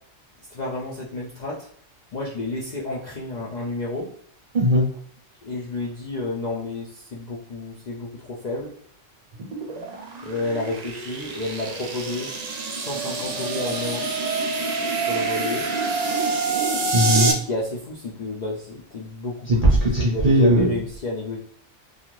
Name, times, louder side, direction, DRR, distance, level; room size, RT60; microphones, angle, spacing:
voice 1, 0.5-1.7 2.1-4.1 5.4-8.7 10.2-12.3 12.7-14.1 15.1-15.7 17.3-19.7 20.0-21.4, left 2 dB, 60° left, -5 dB, 0.4 m, -31 dB
voice 2, 4.5-4.9 16.9-17.3 19.5-20.7, equal, 40° right, -6 dB, 0.6 m, -18 dB
sound 1, 9.3-17.3, right 3 dB, 85° right, 0.3 m, -26 dB
2.4 x 2.3 x 3.0 m, 0.63 s
omnidirectional pair, 1.2 m